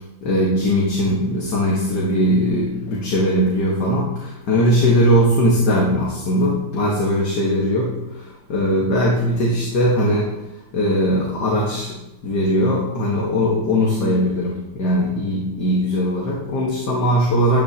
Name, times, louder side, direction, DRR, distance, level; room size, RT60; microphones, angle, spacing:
voice 1, 0.2-10.4 10.7-12.0 12.2-17.6, equal, 65° left, -4 dB, 2.1 m, -19 dB
14.0 x 9.6 x 2.9 m, 1.0 s
omnidirectional pair, 2.0 m